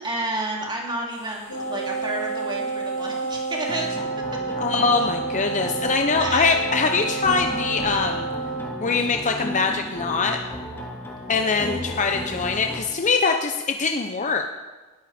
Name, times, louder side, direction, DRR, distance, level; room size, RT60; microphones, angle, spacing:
voice 1, 0.0-3.9 6.2-6.5, right 2 dB, 20° right, -1 dB, 3.1 m, -30 dB
sound 1, 1.1-12.8, left 1 dB, 10° left, 2.4 m, -35 dB
Wind instrument woodwind instrument, 1.5-8.8, right 4 dB, 65° left, 2.8 m, -30 dB
voice 2, 4.6-8.3 8.8-10.4 11.3-14.5, left 4 dB, 35° left, 4 dB, 0.8 m, -23 dB
19.5 x 13.5 x 4.4 m, 1.2 s
head